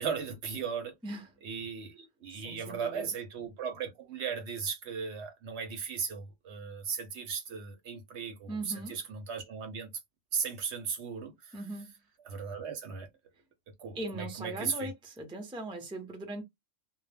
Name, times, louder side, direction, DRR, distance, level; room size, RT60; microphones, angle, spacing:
voice 1, 0.0-0.9 1.4-9.9 10.3-11.5 12.3-13.1 13.8-14.9, right 6 dB, 65° right, 0.8 m, -37 dB
voice 2, 2.3-3.1 8.5-9.0 11.5-11.9 13.9-16.4, right 1 dB, 5° right, 0.4 m, -39 dB
2.1 x 2.1 x 3.3 m
omnidirectional pair, 1.4 m